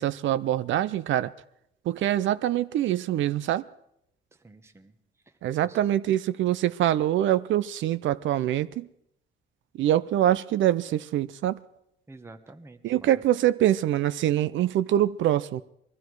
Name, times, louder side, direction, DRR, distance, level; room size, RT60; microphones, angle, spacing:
voice 1, 0.0-1.3 1.9-3.6 5.4-8.9 9.7-11.6 12.8-15.6, right 12 dB, 75° right, 0.5 m, -24 dB
voice 2, 4.3-5.0 5.2-5.8 12.1-13.2, right 2 dB, 15° right, 1.0 m, -50 dB
21.5 x 13.0 x 4.7 m
cardioid pair, 90°, 20 cm